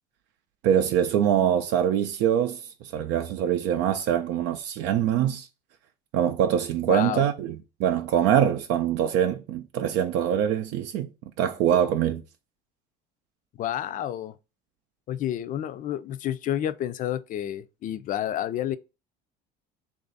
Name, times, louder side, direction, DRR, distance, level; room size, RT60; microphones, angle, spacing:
voice 1, 0.6-5.5 6.1-11.1 11.4-12.2, right 9 dB, 75° right, 0.5 m, -24 dB
voice 2, 6.9-7.2 13.6-14.4 15.1-18.8, left 11 dB, 45° left, 0.4 m, -30 dB
3.2 x 2.5 x 3.9 m
supercardioid pair, 105°, 19 cm